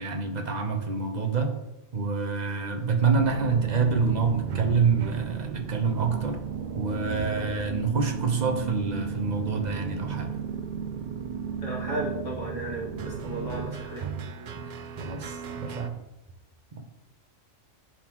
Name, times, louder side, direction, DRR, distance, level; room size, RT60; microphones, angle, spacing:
voice 1, 0.0-1.5 1.9-6.4 6.7-10.3 15.0-16.0, right 5 dB, 40° right, 3 dB, 0.9 m, -27 dB
sound 1, 3.1-15.9, right 7 dB, 70° right, 0.4 m, -35 dB
voice 2, 11.6-14.0, right 1 dB, 70° left, -4 dB, 2.3 m, -34 dB
11.0 x 3.9 x 3.0 m, 0.96 s
omnidirectional pair, 1.3 m